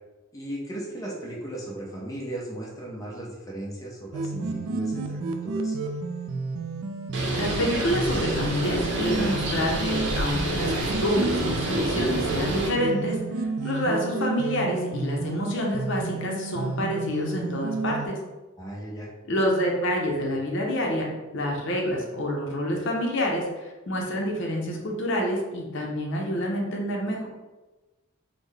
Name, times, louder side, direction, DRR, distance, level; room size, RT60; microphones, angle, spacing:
voice 1, 0.3-5.8 18.6-19.1, right 1 dB, 15° left, -3 dB, 0.6 m, -36 dB
sound 1, 4.1-18.1, right 3 dB, 80° right, 0.3 m, -31 dB
Bird, 7.1-12.7, right 1 dB, 60° right, 0.7 m, -28 dB
voice 2, 7.3-18.2 19.3-27.3, equal, 60° left, 0 dB, 0.6 m, -27 dB
3.7 x 2.1 x 3.2 m, 1.2 s
head